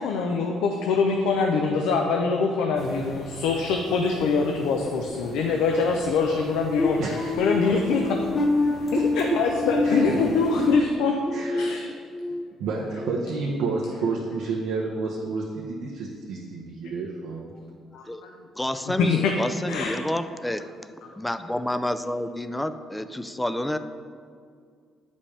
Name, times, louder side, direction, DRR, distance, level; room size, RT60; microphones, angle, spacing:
voice 1, 0.0-8.2 9.1-11.2 11.5-11.9 17.9-18.0 18.9-19.3 19.7-20.0, left 4 dB, 85° left, 2 dB, 0.5 m, -24 dB
sound 1, 2.7-10.7, left 1 dB, 50° left, 1.4 m, -43 dB
sound 2, 6.8-12.4 12.9-13.2 13.7-13.9, left 3 dB, 30° left, 0.7 m, -28 dB
voice 2, 7.0-7.4 9.0-9.4 9.8-10.3 11.1-11.8 12.6-17.4, right 4 dB, 85° right, -3 dB, 0.8 m, -30 dB
voice 3, 18.6-20.7 21.1-23.8, left 1 dB, 5° left, 10 dB, 0.3 m, -29 dB
8.6 x 5.2 x 3.3 m, 2.2 s
cardioid pair, 100°, 0 cm